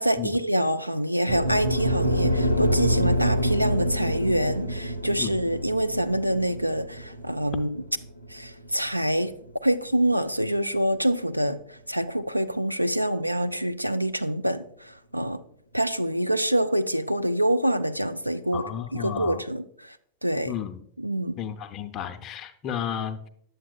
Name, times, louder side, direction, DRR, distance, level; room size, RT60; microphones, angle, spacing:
voice 1, 0.0-7.8 8.3-9.3 9.6-15.4 15.7-20.0 20.2-20.5 21.0-21.4, right 1 dB, 90° right, 0.3 m, -26 dB
sound 1, 1.3-9.5, equal, 90° left, 0.5 m, -26 dB
voice 2, 18.5-19.4 20.5-20.8 21.4-23.3, left 9 dB, 35° left, 0.5 m, -32 dB
8.6 x 7.5 x 2.2 m
figure-of-eight pair, 90°, 0 cm